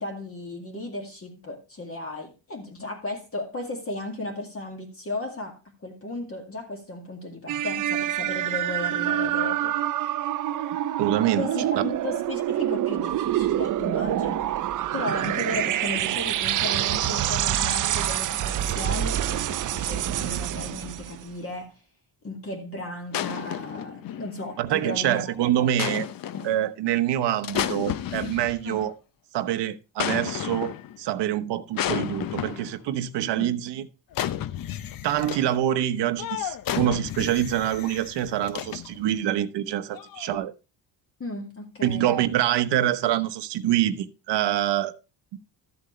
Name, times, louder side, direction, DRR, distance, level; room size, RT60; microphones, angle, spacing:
voice 1, 0.0-9.8 11.4-14.5 14.9-21.8 22.2-25.7 26.3-26.5 28.7-28.8 33.3-33.5 41.2-42.1, left 2 dB, 30° left, 2.1 m, -35 dB
sound 1, 7.5-21.2, right 12 dB, 50° right, 0.6 m, -26 dB
voice 2, 11.0-11.5 11.8-11.9 24.6-26.1 26.4-28.9 29.3-33.9 35.0-40.5 41.8-44.9, right 12 dB, 75° right, 0.9 m, -25 dB
sound 2, 23.1-24.6 25.8-26.6 27.4-28.8 30.0-31.0 31.8-32.8 34.1-35.6 36.2-39.1 39.9-40.4, left 11 dB, 55° left, 0.7 m, -32 dB
13.0 x 7.8 x 3.2 m
cardioid pair, 125°, 42 cm